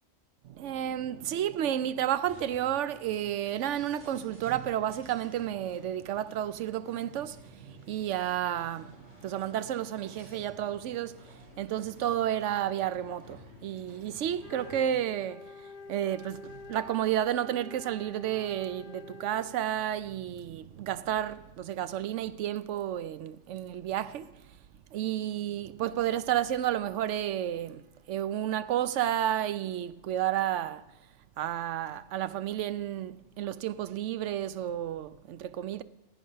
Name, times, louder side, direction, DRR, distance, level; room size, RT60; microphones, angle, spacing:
voice 1, 0.4-24.4 24.9-30.8 31.4-35.8, right 11 dB, 85° right, 0.9 m, -31 dB
sound 1, 2.2-15.0, left 3 dB, 15° right, 6.4 m, -55 dB
Wind instrument woodwind instrument, 14.3-19.6, left 4 dB, 30° left, 1.0 m, -48 dB
16.5 x 9.2 x 5.6 m
omnidirectional pair, 1.2 m